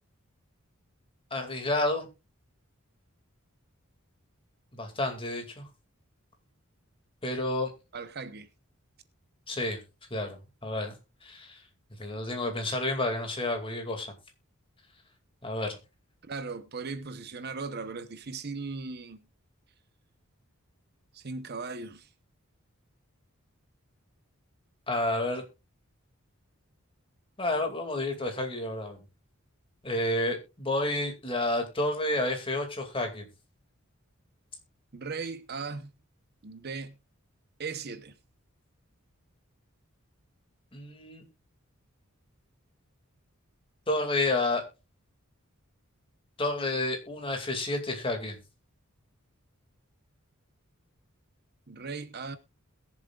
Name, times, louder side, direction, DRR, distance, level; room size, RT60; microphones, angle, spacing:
voice 1, 1.3-2.1 4.7-5.6 7.2-7.7 9.5-9.8 10.1-11.0 11.2-11.6 12.0-14.1 15.4-15.8 24.9-25.4 27.4-29.0 29.8-33.2 40.7-41.2 43.9-44.6 46.4-48.4, left 2 dB, 25° left, 2.4 m, -30 dB
voice 2, 7.9-8.5 16.3-19.2 21.1-22.1 34.9-35.9 36.4-37.0 37.6-38.1 51.7-52.4, right 4 dB, 50° right, 0.9 m, -38 dB
21.5 x 7.4 x 2.4 m
head